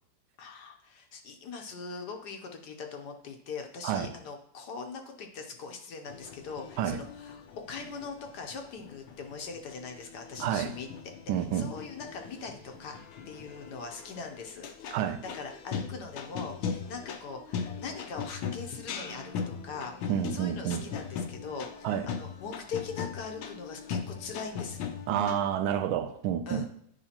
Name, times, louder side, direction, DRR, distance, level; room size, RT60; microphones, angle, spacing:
voice 1, 0.4-10.9 11.4-13.0 13.3-14.6 15.3-19.9 20.3-24.8 26.5-26.7, left 5 dB, 65° left, 1.2 m, -41 dB
sound 1, 6.1-25.5, left 6 dB, 85° left, 1.5 m, -40 dB
voice 2, 10.4-10.7 11.3-11.7 14.9-15.2 20.1-20.8 21.8-22.1 25.1-26.7, right 9 dB, 90° right, 1.4 m, -29 dB
9.8 x 5.0 x 2.9 m
omnidirectional pair, 2.2 m